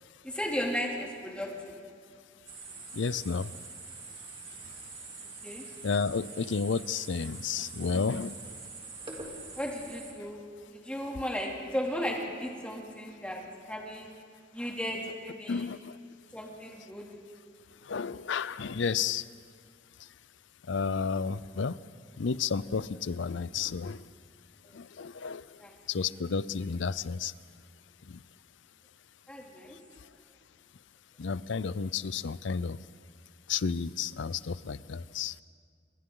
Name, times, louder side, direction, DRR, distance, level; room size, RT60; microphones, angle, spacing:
voice 1, 0.2-1.8 5.4-5.6 9.6-10.4 10.7-13.4 13.7-14.1 14.5-15.7 16.3-17.1 24.6-24.8 25.6-25.8 29.3-29.8, equal, 5° left, -2 dB, 2.8 m, -35 dB
sound 1, 2.5-10.1, right 4 dB, 30° right, 3.1 m, -45 dB
voice 2, 2.9-3.5 5.8-8.4 15.5-16.0 17.8-19.3 20.0-20.1 20.7-21.8 22.2-24.1 24.7-25.6 25.9-27.3 28.1-28.2 29.7-29.8 31.2-32.8 33.5-35.4, left 5 dB, 75° left, 17 dB, 0.5 m, -32 dB
28.0 x 24.5 x 3.9 m, 2.1 s
head